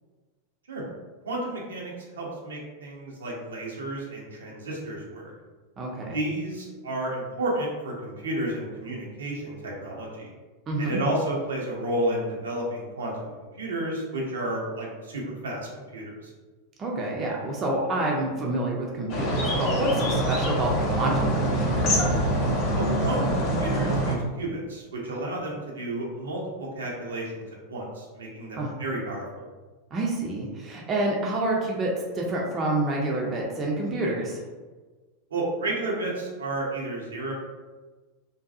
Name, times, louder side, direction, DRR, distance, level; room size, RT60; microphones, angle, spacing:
voice 1, 1.2-5.3 6.1-10.3 10.8-13.3 13.6-16.1 22.7-29.4 35.3-37.3, right 1 dB, 75° right, -3 dB, 0.6 m, -32 dB
voice 2, 5.8-6.2 10.7-11.0 16.8-22.1 28.6-28.7 29.9-34.4, right 2 dB, 30° right, -2 dB, 0.5 m, -28 dB
sound 1, 19.1-24.1, right 1 dB, 45° left, 0.6 m, -24 dB
2.6 x 2.2 x 2.4 m, 1.3 s
figure-of-eight pair, 90°, 0 cm